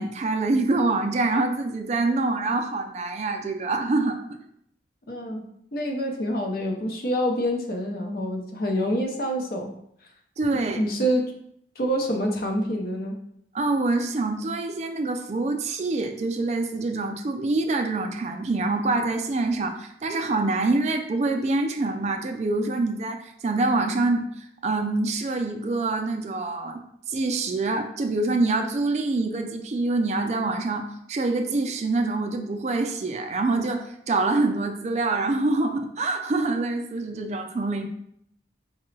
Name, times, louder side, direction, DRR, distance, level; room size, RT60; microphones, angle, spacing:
voice 1, 0.0-4.2 10.4-10.8 13.5-26.8 27.1-37.9, right 3 dB, 40° right, 5 dB, 0.3 m, -25 dB
voice 2, 5.1-5.4 5.7-9.7 10.7-11.2 11.8-13.2, equal, 55° left, 2 dB, 0.6 m, -26 dB
4.8 x 2.2 x 3.1 m, 0.70 s
head